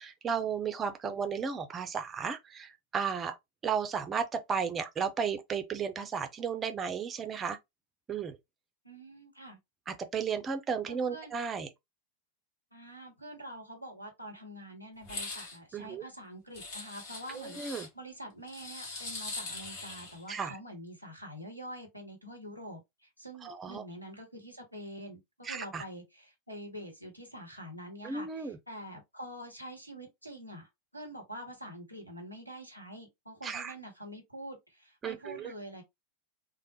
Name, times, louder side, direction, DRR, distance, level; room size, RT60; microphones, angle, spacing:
voice 1, 0.0-3.4 3.6-7.6 8.1-8.4 9.9-11.7 15.7-16.0 17.3-17.9 20.3-20.6 23.4-23.8 25.4-25.8 28.0-28.6 33.4-33.7 35.0-35.5, right 6 dB, 20° right, 0.5 m, -34 dB
voice 2, 8.8-9.6 10.9-11.3 12.7-35.8, equal, 90° left, 1.0 m, -46 dB
sound 1, 15.0-15.6 16.5-17.9 18.5-20.2, left 3 dB, 45° left, 1.2 m, -41 dB
3.2 x 2.1 x 2.8 m
figure-of-eight pair, 90°, 0 cm